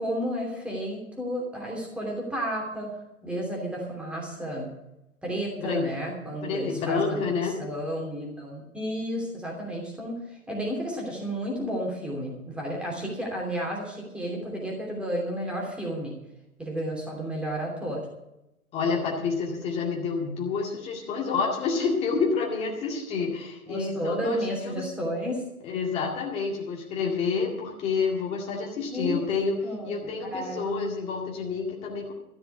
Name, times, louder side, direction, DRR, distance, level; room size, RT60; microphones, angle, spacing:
voice 1, 0.0-3.0 3.2-4.7 5.2-7.3 7.6-16.1 16.6-18.0 23.7-25.4 28.9-29.3 29.6-30.9, equal, ahead, -2 dB, 2.9 m, -32 dB
voice 2, 6.2-7.6 18.7-24.8 25.6-32.1, left 5 dB, 15° left, -2 dB, 2.1 m, -29 dB
13.5 x 6.7 x 9.7 m, 0.90 s
figure-of-eight pair, 140°, 43 cm